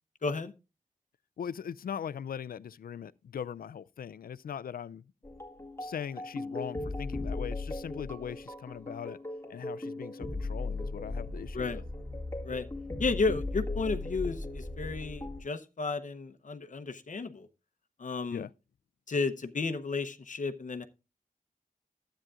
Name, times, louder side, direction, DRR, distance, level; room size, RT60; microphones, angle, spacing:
voice 1, 0.2-0.5 11.5-11.8 12.4-12.6 13.0-17.5 18.0-18.4 19.1-20.8, left 4 dB, 60° left, 0.8 m, -33 dB
voice 2, 1.4-5.0 5.8-9.2 9.5-11.8 18.3-18.5, left 8 dB, 90° left, 0.4 m, -40 dB
sound 1, 5.2-15.4, left 2 dB, 20° left, 2.0 m, -37 dB
12.5 x 8.8 x 2.4 m
wide cardioid pair, 80°, 15 cm